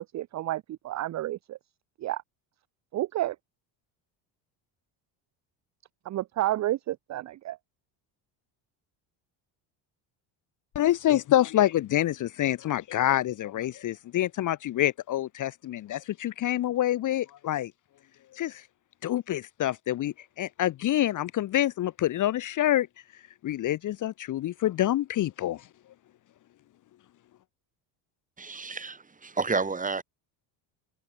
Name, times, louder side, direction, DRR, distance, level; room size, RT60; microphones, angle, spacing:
voice 1, 0.0-1.6 2.0-2.2 2.9-3.4 6.1-7.6, right 14 dB, 40° right, 0.6 m, -30 dB
voice 2, 10.7-17.7 18.3-18.6 19.0-22.9 23.4-25.6, left 13 dB, 40° left, 0.9 m, -27 dB
voice 3, 28.4-30.0, right 4 dB, 15° right, 3.1 m, -30 dB
cardioid pair, 130°, 45 cm